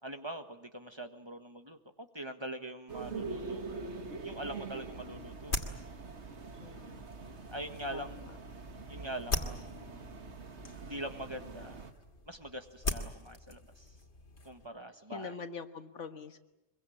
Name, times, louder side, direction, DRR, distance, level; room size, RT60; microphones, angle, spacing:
voice 1, 0.0-5.7 7.5-8.3 8.9-10.1 10.8-11.8 12.3-13.9 14.4-15.4, right 1 dB, 25° right, 7 dB, 1.6 m, -43 dB
sound 1, 2.9-11.9, right 4 dB, 70° right, 1.9 m, -44 dB
sound 2, 4.4-14.7, left 2 dB, 70° left, 2.6 m, -42 dB
voice 2, 6.6-7.0 7.9-8.2 15.1-16.4, left 4 dB, 85° left, 8 dB, 1.8 m, -44 dB
24.5 x 23.0 x 8.7 m, 0.95 s
omnidirectional pair, 1.2 m